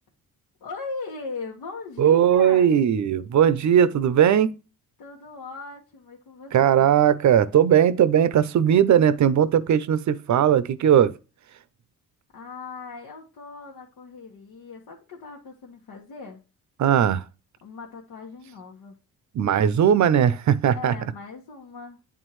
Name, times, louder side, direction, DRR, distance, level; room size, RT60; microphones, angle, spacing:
voice 1, 0.6-2.8 5.0-6.9 12.3-16.4 17.6-18.9 20.7-22.0, left 4 dB, 75° left, 1.4 m, -39 dB
voice 2, 2.0-4.5 6.5-11.1 16.8-17.2 19.3-21.0, right 9 dB, 50° right, 0.6 m, -19 dB
8.9 x 3.6 x 3.1 m
cardioid pair, 100°, 36 cm